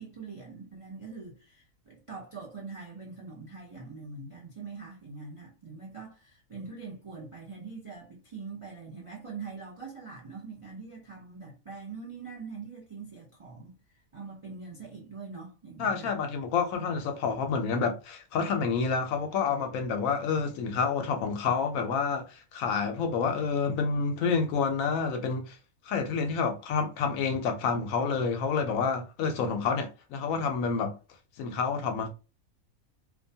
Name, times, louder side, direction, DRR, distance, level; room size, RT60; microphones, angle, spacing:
voice 1, 0.0-16.1, right 4 dB, 50° right, 0.4 m, -43 dB
voice 2, 15.8-25.6 25.9-31.0 31.4-32.1, left 5 dB, 75° left, 1.0 m, -28 dB
2.5 x 2.2 x 2.6 m
omnidirectional pair, 1.5 m